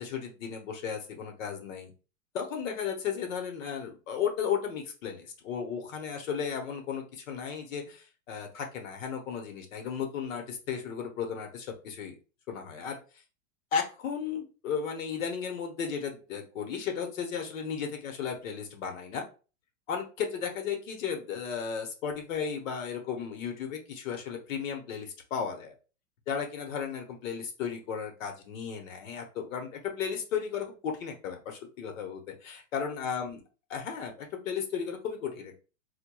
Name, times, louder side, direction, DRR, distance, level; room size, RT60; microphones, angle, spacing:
voice 1, 0.0-1.9 2.3-12.2 12.5-13.0 13.7-19.2 19.9-25.7 26.3-33.4 33.7-35.5, left 7 dB, 65° left, 4 dB, 0.9 m, -35 dB
4.5 x 2.2 x 2.2 m, 0.34 s
supercardioid pair, 170°, 42 cm